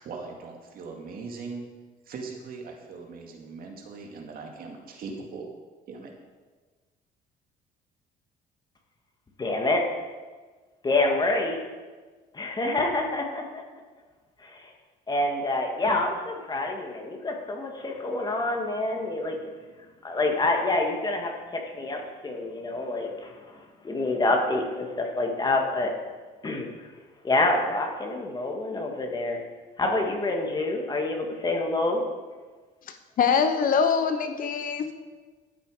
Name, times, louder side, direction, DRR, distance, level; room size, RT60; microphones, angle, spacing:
voice 1, 0.0-1.7 2.1-5.5 5.9-6.1, right 4 dB, 60° right, 2 dB, 2.1 m, -40 dB
voice 2, 9.4-9.8 10.8-11.6 12.3-13.6 14.4-14.7 15.1-19.4 20.0-25.9 26.4-26.7 27.2-29.4 29.8-32.0, left 2 dB, 25° left, 1 dB, 2.0 m, -27 dB
voice 3, 33.2-34.9, left 6 dB, 55° left, 8 dB, 1.0 m, -23 dB
13.0 x 7.2 x 5.0 m, 1.4 s
cardioid pair, 110°, 17 cm